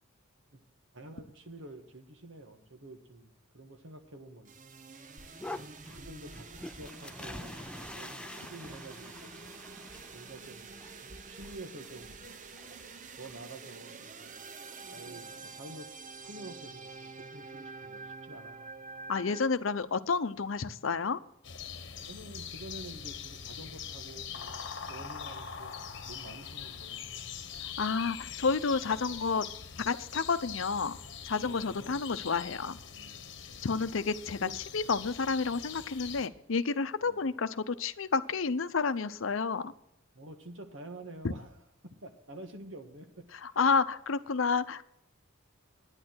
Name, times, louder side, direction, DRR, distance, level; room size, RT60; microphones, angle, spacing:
voice 1, 0.9-4.5 5.5-9.4 10.1-10.7 11.0-12.2 13.2-14.4 14.9-15.9 16.2-18.7 22.1-24.6 24.9-27.3 31.4-32.0 32.9-33.6 34.4-34.6 37.0-37.2 40.1-43.6, right 1 dB, 70° right, 6 dB, 1.6 m, -49 dB
sound 1, 4.5-19.4, right 4 dB, 40° right, 0.7 m, -47 dB
sound 2, 5.2-13.4, left 1 dB, 5° left, 0.4 m, -47 dB
voice 2, 19.1-21.2 27.8-29.4 29.8-31.0 31.2-32.8 33.6-34.5 34.7-39.7 41.2-41.3 43.4-44.9, left 4 dB, 75° left, 13 dB, 0.7 m, -30 dB
sound 3, 21.4-36.3, left 7 dB, 60° left, 1.1 m, -43 dB
11.0 x 9.8 x 6.3 m, 0.79 s
head